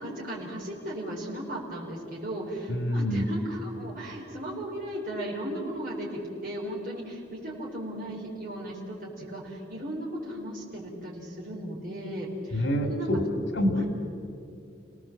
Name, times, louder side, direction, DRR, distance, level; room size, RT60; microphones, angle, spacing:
voice 1, 0.0-13.2, right 1 dB, 45° right, -4 dB, 4.5 m, -36 dB
voice 2, 2.7-3.3 12.5-13.2 13.5-13.9, equal, 85° left, 5 dB, 3.0 m, -26 dB
30.0 x 18.5 x 7.5 m, 2.5 s
head